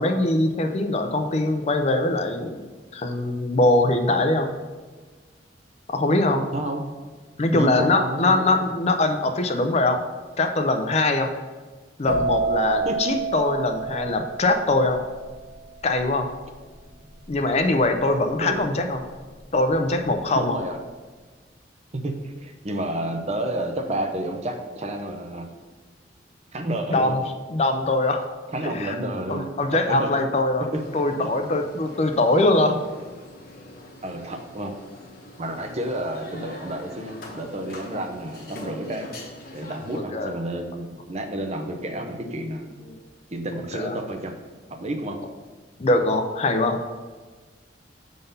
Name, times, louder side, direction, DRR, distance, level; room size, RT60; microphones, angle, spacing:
voice 1, 0.0-4.5 5.9-6.4 7.4-10.0 10.4-11.3 12.0-15.0 15.8-16.3 17.3-19.0 19.5-20.6 26.9-27.2 27.5-28.3 28.6-29.0 29.3-30.6 30.9-32.8 40.1-40.3 42.9-43.0 43.7-44.0 45.8-46.8, left 2 dB, 35° left, 5 dB, 0.5 m, -22 dB
voice 2, 7.5-8.4 12.8-13.0 18.4-18.7 20.3-20.8 22.0-25.5 26.5-27.1 28.5-30.1 30.7-30.8 31.2-31.3 34.0-34.7 35.4-39.1 39.5-42.8 43.3-44.4 44.7-45.2, right 1 dB, 40° right, 4 dB, 0.7 m, -30 dB
sound 1, 12.1-19.6 19.9-20.4, right 3 dB, 65° right, 1.2 m, -29 dB
sound 2, 30.7-40.0, left 1 dB, 55° left, 1.1 m, -43 dB
6.6 x 3.9 x 5.4 m, 1.4 s
head